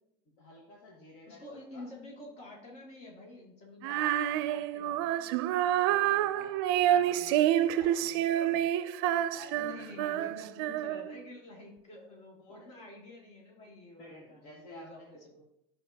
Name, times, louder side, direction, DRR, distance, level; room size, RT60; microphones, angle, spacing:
voice 1, 0.4-1.8 3.9-4.4 5.6-6.6 6.8-8.7 9.3-10.1 12.4-12.7 14.0-15.1, left 1 dB, 70° left, -2 dB, 1.6 m, -51 dB
voice 2, 1.3-5.3 5.9-6.5 6.8-6.9 9.5-15.4, left 1 dB, 50° left, -2 dB, 2.5 m, -49 dB
Female singing, 3.8-11.2, right 12 dB, 80° right, 0.4 m, -28 dB
12.5 x 5.2 x 2.8 m, 0.81 s
cardioid pair, 150°, 13 cm